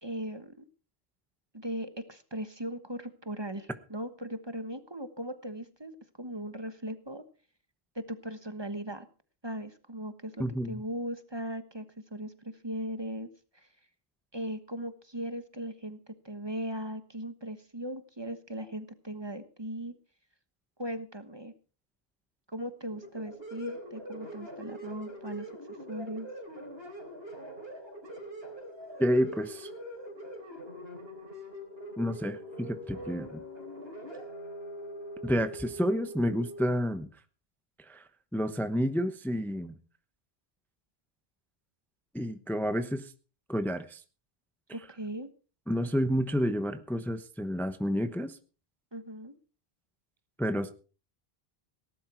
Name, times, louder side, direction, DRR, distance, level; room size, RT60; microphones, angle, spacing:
voice 1, 0.0-0.5 1.5-7.2 7.9-9.1 9.4-11.8 12.1-13.3 13.5-13.7 14.3-20.0 20.8-21.5 22.5-25.5 25.9-26.3 44.7-45.3 48.9-49.3, right 1 dB, 25° right, 11 dB, 1.3 m, -38 dB
voice 2, 10.4-10.8 29.0-29.7 32.0-33.4 35.2-37.1 37.8-39.7 42.1-43.1 43.5-44.0 45.7-48.4 50.4-50.7, equal, ahead, 10 dB, 0.9 m, -30 dB
sound 1, 22.9-36.7, equal, 70° right, 4.4 m, -43 dB
18.0 x 11.5 x 4.5 m, 0.36 s
omnidirectional pair, 1.1 m